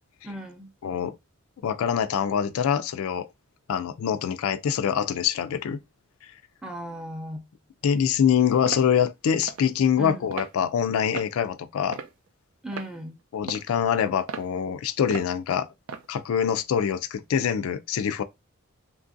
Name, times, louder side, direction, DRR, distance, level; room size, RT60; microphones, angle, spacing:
voice 1, 0.2-0.7 6.6-7.4 10.0-10.3 12.6-13.2, equal, 5° right, 0.5 m, -36 dB
voice 2, 0.8-1.2 1.6-3.3 3.7-5.8 7.8-12.0 13.3-15.7 16.1-18.2, left 8 dB, 80° left, 0.3 m, -24 dB
sound 1, 8.7-8.9 9.5-9.7 10.3-10.5 11.1-11.4 11.9-12.3 12.7-12.9 13.5-13.7 14.3-14.5 15.1-15.3 15.9-16.1, right 5 dB, 70° right, 0.4 m, -35 dB
2.9 x 2.5 x 2.5 m
head